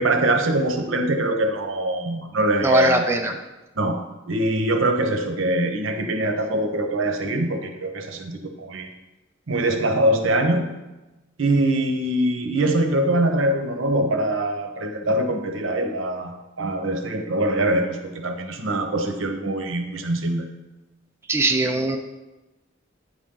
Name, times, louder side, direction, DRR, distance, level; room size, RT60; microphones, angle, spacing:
voice 1, 0.0-3.0 3.8-4.0 4.3-8.9 9.5-10.7 11.4-20.4, right 1 dB, 75° right, 5 dB, 0.9 m, -23 dB
voice 2, 2.6-3.3 21.3-22.0, right 2 dB, 15° right, 3 dB, 0.4 m, -20 dB
9.3 x 4.2 x 3.8 m, 1.1 s
head